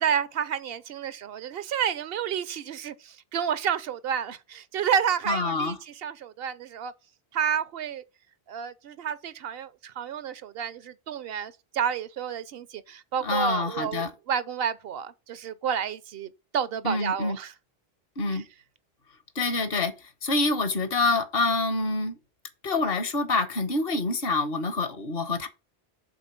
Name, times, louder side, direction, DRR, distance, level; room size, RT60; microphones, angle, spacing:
voice 1, 0.0-5.8 6.0-6.9 7.3-8.0 8.5-17.5, right 8 dB, 70° right, 0.8 m, -30 dB
voice 2, 5.3-5.8 13.2-14.1 16.8-17.4 18.2-18.4 19.3-22.2 22.6-25.5, left 3 dB, 65° left, 1.3 m, -26 dB
7.9 x 3.7 x 5.8 m
omnidirectional pair, 1.0 m